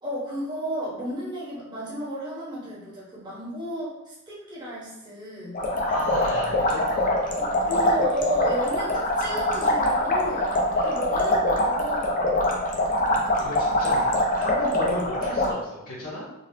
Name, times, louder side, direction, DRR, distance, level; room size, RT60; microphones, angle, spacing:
voice 1, 0.0-5.6 7.4-12.3, equal, 20° right, -8 dB, 1.1 m, -33 dB
sound 1, 5.5-15.5, left 1 dB, 40° left, 0.5 m, -24 dB
voice 2, 5.8-7.4 10.7-10.9 13.4-14.0 14.3-16.2, left 1 dB, 60° left, -9 dB, 1.1 m, -34 dB
4.0 x 2.4 x 2.7 m, 0.94 s
head